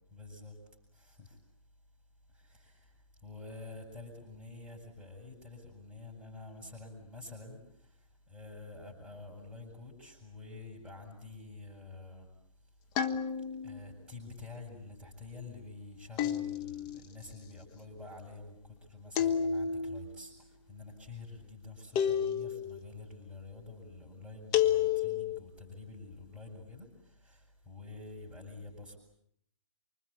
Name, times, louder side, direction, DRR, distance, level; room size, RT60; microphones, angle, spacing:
voice 1, 0.1-0.6 0.9-1.4 2.3-12.3 13.6-29.0, left 3 dB, ahead, -1 dB, 6.1 m, -48 dB
sound 1, 13.0-13.8 16.2-17.0 19.1-20.0 22.0-22.8 24.5-25.4, left 9 dB, 25° left, 1.4 m, -30 dB
26.0 x 25.0 x 8.4 m, 0.69 s
figure-of-eight pair, 130°, 17 cm